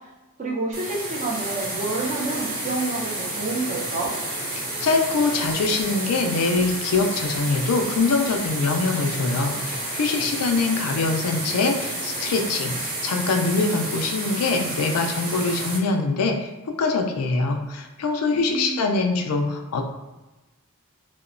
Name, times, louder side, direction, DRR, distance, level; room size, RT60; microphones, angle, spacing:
voice 1, 0.4-4.1 18.5-19.0, right 3 dB, 30° right, -2 dB, 0.4 m, -28 dB
sound 1, 0.7-15.8, right 1 dB, 75° right, 0.8 m, -30 dB
voice 2, 4.6-16.5 16.8-19.8, left 3 dB, 90° left, 4 dB, 0.4 m, -23 dB
2.8 x 2.0 x 2.5 m, 1.1 s
head